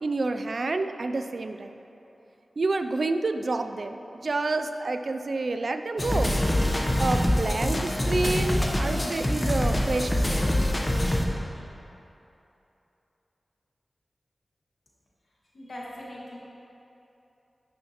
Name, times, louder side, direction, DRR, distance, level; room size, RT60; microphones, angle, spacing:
voice 1, 0.0-1.8 2.6-6.4 7.0-10.5, right 3 dB, 65° right, 8 dB, 0.3 m, -29 dB
sound 1, 6.0-11.2, left 1 dB, 25° left, 0.9 m, -25 dB
voice 2, 15.5-16.4, left 1 dB, 65° left, -5 dB, 1.7 m, -40 dB
11.5 x 6.3 x 2.9 m, 3.0 s
wide cardioid pair, 65°, 0 cm